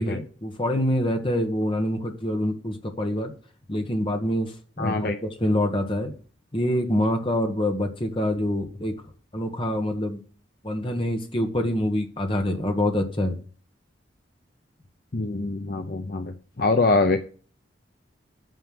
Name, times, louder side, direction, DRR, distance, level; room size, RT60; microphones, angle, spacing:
voice 1, 0.0-3.3 3.7-4.5 4.8-6.1 6.5-8.9 9.3-10.2 10.6-13.4, left 1 dB, 25° left, 4 dB, 1.5 m, -26 dB
voice 2, 4.8-5.2 15.1-17.2, left 3 dB, 50° left, 6 dB, 0.8 m, -24 dB
9.4 x 5.7 x 7.8 m, 0.41 s
head